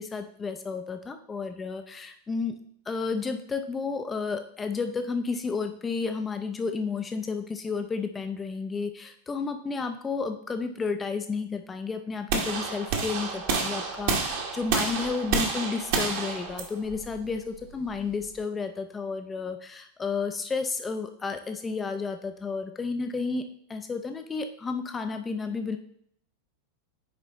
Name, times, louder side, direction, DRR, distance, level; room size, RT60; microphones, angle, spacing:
voice 1, 0.0-2.6 2.9-23.4 23.7-25.8, left 4 dB, 15° left, 7 dB, 0.4 m, -32 dB
sound 1, 12.3-18.4, right 5 dB, 50° right, 1.2 m, -29 dB
9.6 x 4.0 x 3.0 m, 0.67 s
figure-of-eight pair, 90°, 0 cm